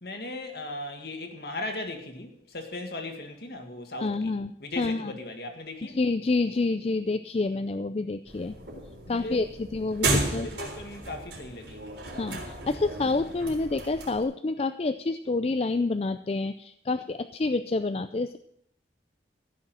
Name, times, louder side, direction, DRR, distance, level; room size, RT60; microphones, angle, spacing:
voice 1, 0.0-4.3 4.6-6.0 9.1-9.4 10.1-12.2, left 2 dB, 60° left, 4 dB, 2.0 m, -38 dB
voice 2, 4.0-5.2 5.8-8.6 9.1-10.5 12.1-18.4, left 3 dB, 35° left, 10 dB, 0.4 m, -28 dB
sound 1, 8.3-14.2, right 2 dB, 75° right, 3.8 m, -33 dB
15.0 x 6.3 x 7.6 m, 0.71 s
head